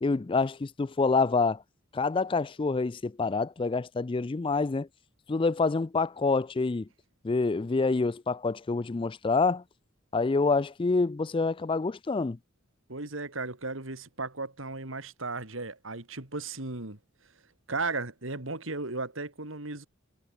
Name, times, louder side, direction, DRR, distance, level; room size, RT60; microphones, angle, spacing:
voice 1, 0.0-1.6 1.9-4.9 5.3-6.9 7.2-9.6 10.1-12.4, left 4 dB, 25° left, 0.4 m, -27 dB
voice 2, 12.9-17.0 17.7-19.9, right 3 dB, 75° right, 2.9 m, -35 dB
head